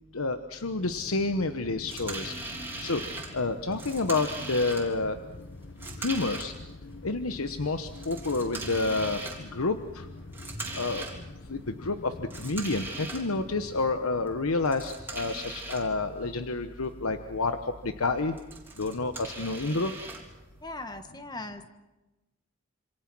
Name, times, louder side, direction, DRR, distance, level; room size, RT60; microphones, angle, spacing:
voice 1, 0.1-2.3 2.8-3.0 3.3-5.2 6.0-6.5 7.0-10.1 10.7-11.0 11.5-17.6 17.8-18.3 18.8-19.9, left 3 dB, 85° left, 8 dB, 1.1 m, -29 dB
sound 1, 0.8-13.9, left 3 dB, 55° left, 0.9 m, -46 dB
sound 2, 1.9-21.0, right 2 dB, 10° right, 3.6 m, -42 dB
voice 2, 20.6-21.7, left 2 dB, 20° left, 8 dB, 1.4 m, -39 dB
27.0 x 26.0 x 6.1 m, 1.1 s
head